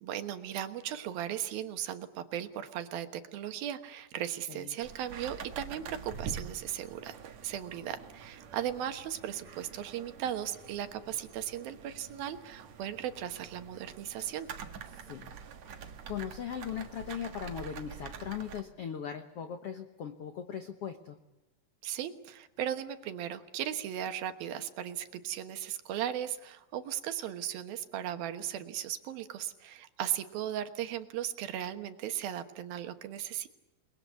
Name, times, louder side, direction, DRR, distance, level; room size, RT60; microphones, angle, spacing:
voice 1, 0.0-7.1 7.4-14.5 21.8-33.5, right 10 dB, 70° right, 8 dB, 3.0 m, -37 dB
sound 1, 4.8-18.6, right 7 dB, 55° right, 2.4 m, -46 dB
voice 2, 15.7-21.2, left 8 dB, 85° left, 7 dB, 1.3 m, -39 dB
29.0 x 21.0 x 8.3 m, 0.99 s
omnidirectional pair, 4.5 m